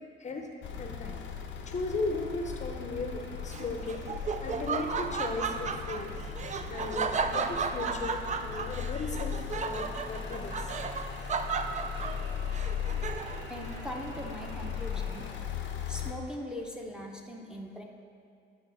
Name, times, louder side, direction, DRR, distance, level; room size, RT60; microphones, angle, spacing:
sound 1, 0.6-16.1, left 7 dB, 75° left, 0.7 m, -38 dB
voice 1, 0.8-1.2 1.7-4.1 4.4-6.1 6.7-10.7, left 3 dB, 35° left, 3 dB, 0.7 m, -36 dB
sound 2, 1.9-15.3, right 1 dB, 65° right, 1.5 m, -50 dB
Laughter, 3.5-13.5, right 5 dB, 35° right, 0.4 m, -34 dB
voice 2, 13.5-15.3 15.9-17.8, equal, 5° right, -1 dB, 0.7 m, -40 dB
9.7 x 3.5 x 5.4 m, 2.3 s
cardioid pair, 90°, 20 cm